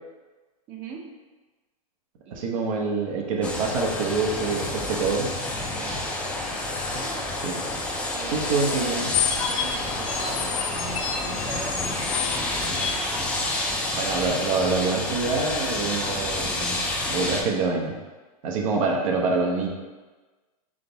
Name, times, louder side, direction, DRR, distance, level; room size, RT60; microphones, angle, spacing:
voice 1, 0.7-1.1 2.3-2.4 5.7-6.2 6.8-7.2 7.6-7.7 8.1-9.0 9.5-12.8, right 4 dB, 35° right, 1 dB, 0.7 m, -40 dB
voice 2, 2.3-5.3 7.4-7.7 8.3-9.1 13.9-16.8 17.1-17.9 18.4-19.7, right 4 dB, 60° right, 1 dB, 1.0 m, -26 dB
sound 1, 3.4-17.4, left 2 dB, 5° left, 0.5 m, -29 dB
sound 2, 9.1-13.7, left 8 dB, 55° left, 0.8 m, -30 dB
3.8 x 3.4 x 4.0 m, 1.3 s
hypercardioid pair, 140°, 19 cm